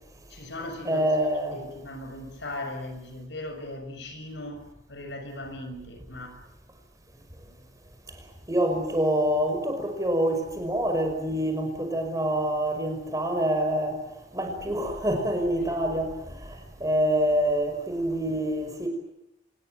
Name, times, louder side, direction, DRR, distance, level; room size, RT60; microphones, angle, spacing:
voice 1, 0.3-1.0 1.5-6.4, left 1 dB, 70° left, 7 dB, 6.2 m, -38 dB
voice 2, 0.8-1.6 8.5-14.0 14.3-18.9, right 1 dB, 20° right, 5 dB, 5.5 m, -26 dB
26.0 x 21.0 x 9.2 m, 0.85 s
head